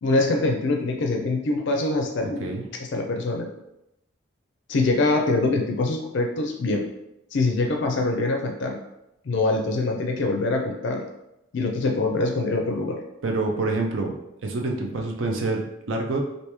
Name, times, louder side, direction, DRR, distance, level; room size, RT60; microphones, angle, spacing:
voice 1, 0.0-2.5 2.8-3.5 4.7-6.8 7.3-8.8 9.3-11.0 11.5-13.0, left 2 dB, 60° left, 2 dB, 0.4 m, -24 dB
voice 2, 2.2-2.6 13.2-14.1 14.4-16.2, right 3 dB, 65° right, 1 dB, 0.5 m, -27 dB
3.0 x 2.6 x 3.3 m, 0.86 s
head